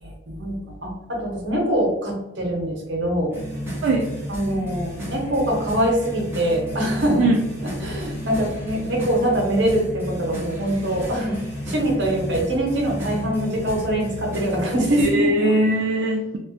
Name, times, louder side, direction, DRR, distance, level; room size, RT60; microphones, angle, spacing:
voice 1, 0.0-3.3 4.3-7.3 7.8-11.4 11.7-15.3, right 1 dB, 65° right, 0 dB, 0.7 m, -23 dB
sound 1, 3.3-15.1, equal, 10° right, 0.6 m, -32 dB
voice 2, 15.0-16.4, right 1 dB, 85° right, 0 dB, 0.3 m, -20 dB
2.4 x 2.2 x 2.5 m, 0.95 s
head